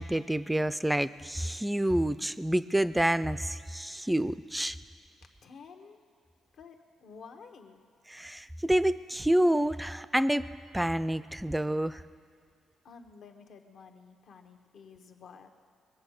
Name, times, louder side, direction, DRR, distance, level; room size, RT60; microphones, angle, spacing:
voice 1, 0.0-4.8 8.1-10.4 10.7-12.0, right 1 dB, 5° right, 14 dB, 0.4 m, -28 dB
voice 2, 5.4-6.0 6.5-6.7 7.0-7.8 12.8-15.5, left 5 dB, 65° left, 5 dB, 1.2 m, -51 dB
22.0 x 7.9 x 6.5 m, 2.2 s
cardioid pair, 90°, 0 cm